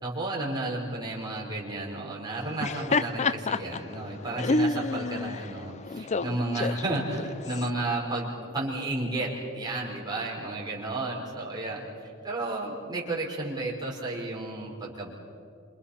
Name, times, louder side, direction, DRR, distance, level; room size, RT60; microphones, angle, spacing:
voice 1, 0.0-15.1, right 2 dB, 20° right, -3 dB, 5.1 m, -32 dB
Laughter, 2.4-7.7, left 3 dB, 35° left, 0.5 m, -29 dB
28.0 x 26.5 x 5.8 m, 2.4 s
head